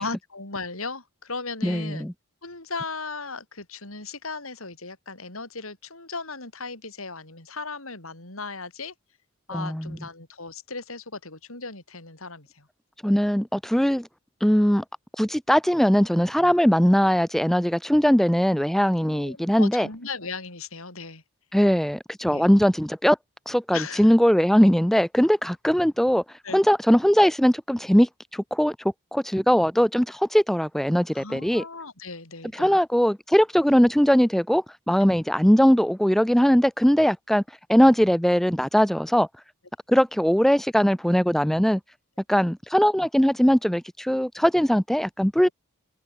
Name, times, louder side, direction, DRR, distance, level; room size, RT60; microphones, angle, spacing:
voice 1, 0.0-2.1 2.4-8.9 9.5-12.7 19.1-21.2 22.3-22.5 23.7-24.1 26.4-26.6 31.1-32.8, left 4 dB, 75° left, 5.8 m, -36 dB
voice 2, 1.6-2.1 9.5-10.0 13.0-14.1 14.4-14.8 15.2-19.9 21.5-23.2 23.5-26.2 26.5-28.8 29.1-31.6 32.5-37.4 37.7-39.3 39.9-41.8 42.3-45.5, equal, ahead, 0.3 m, -20 dB
head